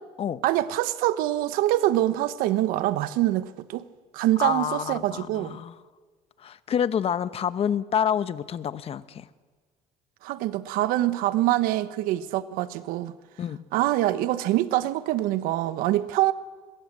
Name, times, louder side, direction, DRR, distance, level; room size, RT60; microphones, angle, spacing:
voice 1, 0.4-3.8 4.1-5.6 10.2-13.1 13.7-16.3, right 15 dB, 80° right, 1.2 m, -25 dB
voice 2, 4.4-5.7 6.4-9.3 13.4-13.6, left 8 dB, 40° left, 1.1 m, -28 dB
25.5 x 22.0 x 7.6 m
cardioid pair, 110°, 15 cm